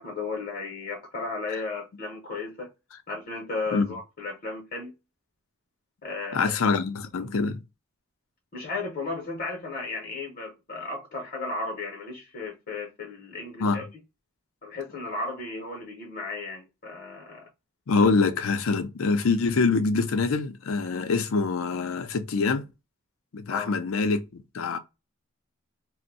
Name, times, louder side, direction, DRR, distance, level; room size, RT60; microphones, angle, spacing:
voice 1, 0.0-2.7 3.1-4.9 6.0-6.8 8.5-13.9 14.6-17.5 23.5-23.7, left 3 dB, 45° left, 0.8 m, -35 dB
voice 2, 6.3-7.6 13.6-13.8 17.9-22.7 23.3-24.8, left 4 dB, 70° left, 0.5 m, -25 dB
2.6 x 2.1 x 3.9 m
head